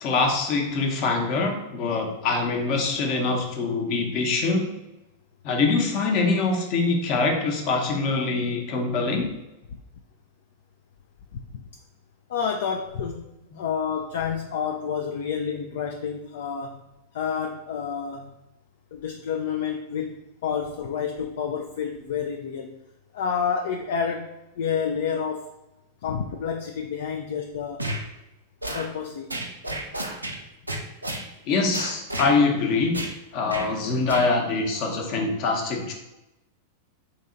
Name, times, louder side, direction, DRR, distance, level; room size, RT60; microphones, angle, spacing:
voice 1, 0.0-4.7 5.4-9.3 31.4-33.0 33.3-35.9, left 3 dB, 45° left, 2 dB, 0.9 m, -24 dB
voice 2, 12.3-13.3 13.5-16.8 17.1-18.4 18.9-22.7 23.1-25.5 26.0-27.8 28.7-29.3, left 7 dB, 60° left, 3 dB, 0.3 m, -29 dB
sound 1, 27.8-28.0 28.6-28.9 29.3-30.4 30.7-31.2 31.7-32.3 32.9-33.1 33.5-33.7 34.1-34.3, right 1 dB, 90° right, 0.5 m, -31 dB
3.9 x 2.8 x 3.8 m, 0.96 s
figure-of-eight pair, 90°, 0 cm